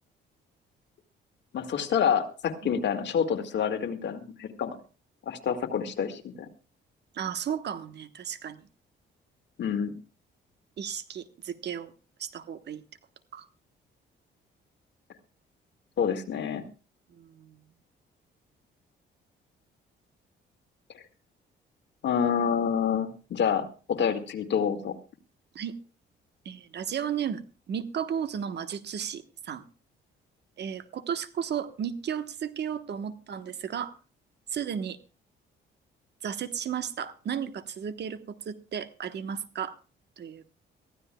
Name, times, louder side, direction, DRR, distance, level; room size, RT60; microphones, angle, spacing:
voice 1, 1.5-4.8 5.2-6.5 9.6-9.9 16.0-16.6 20.9-21.0 22.0-24.9, left 7 dB, 65° left, 7 dB, 1.9 m, -28 dB
voice 2, 7.1-8.7 10.8-11.9 12.2-12.8 13.3-13.4 17.1-17.6 25.5-25.7 26.4-27.4 27.7-29.6 30.6-34.0 34.5-35.0 36.2-39.8 40.2-40.5, right 8 dB, 60° right, 11 dB, 1.2 m, -34 dB
22.5 x 15.0 x 2.3 m, 0.34 s
cardioid pair, 90°, 20 cm